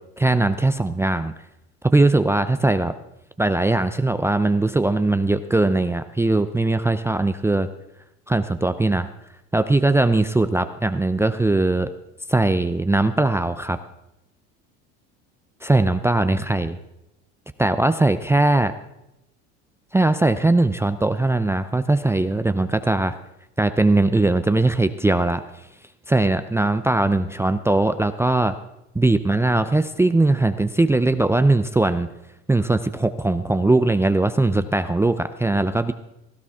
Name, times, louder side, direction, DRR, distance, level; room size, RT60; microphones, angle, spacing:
voice 1, 0.2-1.3 1.8-2.9 3.4-7.7 8.3-9.1 9.5-11.9 12.3-13.8 15.6-16.8 17.6-18.7 19.9-23.2 23.6-25.4 26.1-28.6 28.9-32.1 32.5-35.9, right 2 dB, 10° right, 10 dB, 0.5 m, -20 dB
17.0 x 13.0 x 3.6 m, 0.88 s
supercardioid pair, 95°, 33 cm